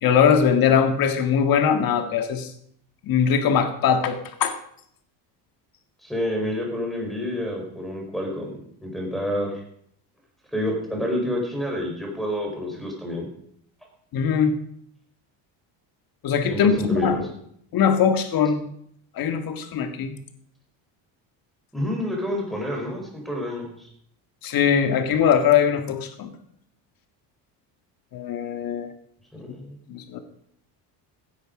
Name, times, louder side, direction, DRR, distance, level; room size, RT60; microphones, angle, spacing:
voice 1, 0.0-2.5 3.0-4.5 14.1-14.5 16.2-17.2 17.7-18.6 19.2-20.1 24.4-26.3 28.1-28.9 29.9-30.2, left 7 dB, 55° left, 7 dB, 1.9 m, -21 dB
voice 2, 6.0-9.5 10.5-13.3 16.5-17.2 21.7-23.9 29.4-29.8, left 1 dB, ahead, -1 dB, 4.4 m, -28 dB
15.5 x 9.9 x 5.2 m, 0.68 s
cardioid pair, 120°, 41 cm